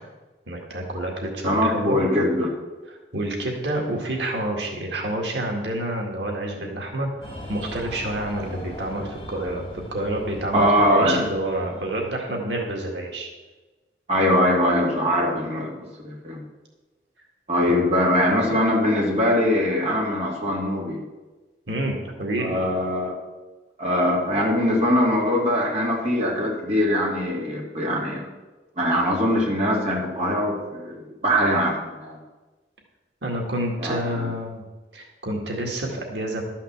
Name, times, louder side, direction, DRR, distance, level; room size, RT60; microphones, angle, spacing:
voice 1, 0.5-2.0 2.9-7.1 7.5-9.6 9.9-13.3 17.7-18.2 21.7-22.6 33.2-34.6 34.9-36.4, right 1 dB, 90° right, 0 dB, 2.1 m, -28 dB
voice 2, 1.4-2.5 10.5-11.2 14.1-15.7 16.0-16.4 17.5-21.0 22.4-23.1 23.8-28.2 28.8-32.2 33.8-34.3, equal, 40° right, -3 dB, 2.6 m, -22 dB
Breathing, 7.2-12.4, equal, 25° left, 3.6 m, -40 dB
12.5 x 5.8 x 7.2 m, 1.2 s
head